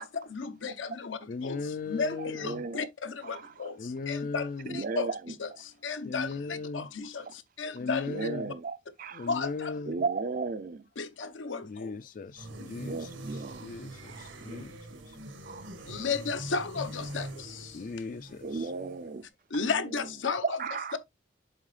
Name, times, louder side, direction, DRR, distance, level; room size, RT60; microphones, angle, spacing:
voice 1, 0.0-8.3 9.3-9.7 11.0-11.9 15.9-17.8 19.5-20.6, left 5 dB, 80° left, 0.9 m, -34 dB
voice 2, 1.3-2.6 3.8-4.8 6.0-6.9 7.7-8.5 9.1-10.0 11.6-14.8 15.1-15.2 17.7-18.7, left 4 dB, 45° left, 0.3 m, -38 dB
voice 3, 2.5-2.8 4.7-5.2 8.1-9.3 9.9-10.8 12.8-13.7 14.1-14.6 14.9-15.0 15.5-15.7 18.4-19.2 19.6-19.7 20.4-21.0, right 4 dB, 45° right, 0.5 m, -34 dB
sound 1, 12.4-19.2, right 1 dB, 80° right, 1.4 m, -43 dB
7.3 x 4.6 x 3.2 m
head